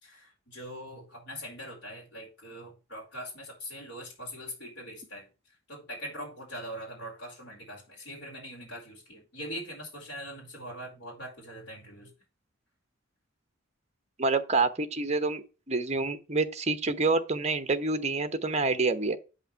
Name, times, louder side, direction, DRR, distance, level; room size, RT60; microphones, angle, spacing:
voice 1, 0.0-5.3 5.7-12.1, equal, 60° left, 4.4 m, -42 dB
voice 2, 14.2-19.2, right 3 dB, 35° right, 1.0 m, -27 dB
8.3 x 5.6 x 4.7 m
head